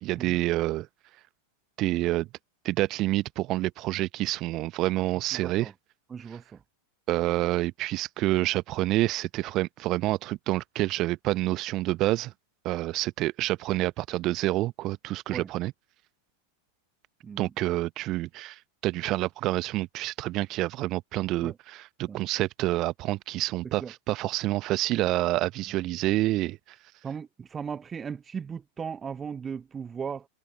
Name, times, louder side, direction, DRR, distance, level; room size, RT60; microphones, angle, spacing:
voice 1, 0.0-0.9 1.8-2.3 2.6-5.7 6.3-6.4 7.1-12.3 12.6-15.7 17.4-26.6, right 17 dB, 35° right, 1.1 m, -28 dB
voice 2, 5.3-5.7 6.1-6.4 15.3-15.5 17.2-17.5 21.4-21.5 22.1-22.2 23.8-23.9 27.0-30.3, right 6 dB, 20° right, 0.7 m, -37 dB
figure-of-eight pair, 90°, 0 cm